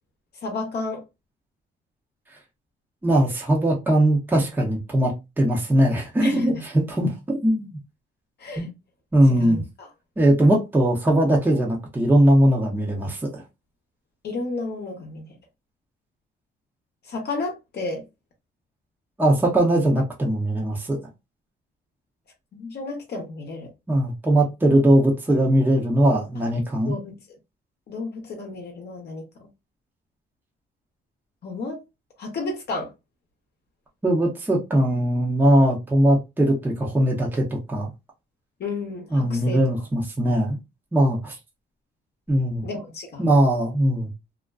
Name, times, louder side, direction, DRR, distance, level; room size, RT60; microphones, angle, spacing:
voice 1, 0.4-1.0 6.2-6.6 8.4-8.7 9.3-9.9 14.2-15.3 17.0-18.0 22.5-23.7 26.8-27.1 27.9-29.5 31.4-31.8 32.2-32.9 38.6-39.6 42.6-43.3, left 3 dB, 55° left, 0.8 m, -32 dB
voice 2, 3.0-5.1 5.4-7.8 8.6-8.7 9.1-9.6 10.2-13.4 19.2-21.0 23.9-26.9 34.0-37.9 39.1-40.6 40.9-41.3 42.3-42.6 43.2-44.1, right 1 dB, 10° right, 0.7 m, -20 dB
2.4 x 2.1 x 2.3 m
cardioid pair, 90°, 20 cm